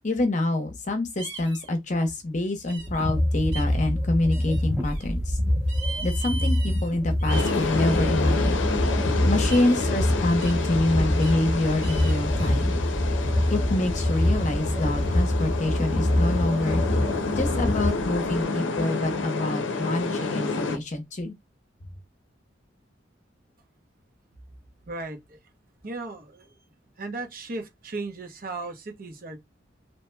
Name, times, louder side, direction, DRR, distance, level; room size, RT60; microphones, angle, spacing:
voice 1, 0.0-5.4 6.0-8.6 9.2-12.8 13.5-16.8 17.3-21.4, left 2 dB, 40° left, 0.8 m, -26 dB
sound 1, 1.2-1.7 2.7-3.1 3.5-3.8 4.3-5.0 5.7-6.9 7.2-8.5 9.4-9.8 10.4-10.7 11.2-11.4 11.8-12.6, right 5 dB, 70° right, 1.6 m, -40 dB
sound 2, 2.8-18.4, left 1 dB, 10° right, 0.9 m, -25 dB
sound 3, 7.3-20.8, left 3 dB, 90° left, 0.5 m, -29 dB
voice 2, 24.9-25.4 25.8-26.6 27.0-29.4, right 3 dB, 50° right, 0.8 m, -36 dB
2.9 x 2.8 x 2.2 m
head